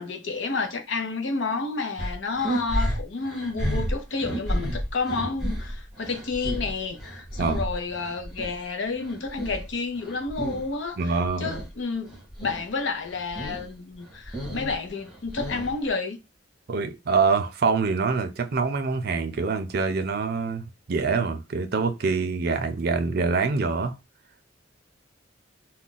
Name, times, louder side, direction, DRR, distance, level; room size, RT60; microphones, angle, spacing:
voice 1, 0.0-16.2, left 4 dB, 80° left, 0.7 m, -30 dB
sound 1, 2.0-8.6 8.9-10.7 11.0-11.7 12.1-12.7 13.0-13.7 14.0-15.9, equal, ahead, 0.8 m, -32 dB
voice 2, 11.0-11.5 16.7-24.0, right 4 dB, 55° right, 0.5 m, -25 dB
2.4 x 2.2 x 3.8 m
head